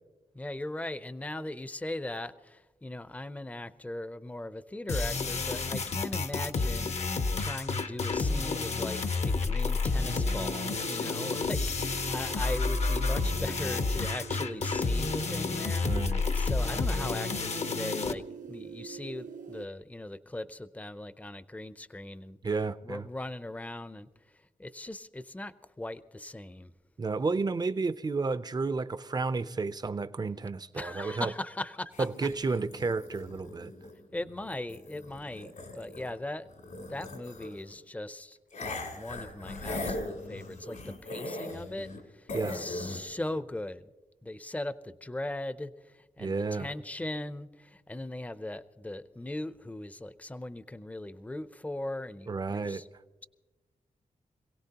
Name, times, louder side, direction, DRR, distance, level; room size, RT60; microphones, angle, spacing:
voice 1, 0.3-22.4 22.8-26.7 30.7-32.1 34.1-36.5 36.9-38.4 38.6-43.8 44.2-52.9, left 1 dB, 10° left, 0.6 m, -39 dB
sound 1, 4.9-18.1, left 3 dB, 55° left, 0.8 m, -30 dB
sound 2, 10.0-19.7, right 6 dB, 75° right, 0.7 m, -44 dB
voice 2, 15.8-16.2 22.4-23.1 27.0-31.3 32.0-33.7 42.3-42.6 46.2-46.7 52.3-52.8, right 4 dB, 30° right, 0.6 m, -31 dB
sound 3, 31.9-36.2 36.4-37.7 38.5-42.0 42.3-43.0, left 2 dB, 80° left, 3.1 m, -40 dB
26.5 x 17.0 x 2.9 m
cardioid pair, 75°, 14 cm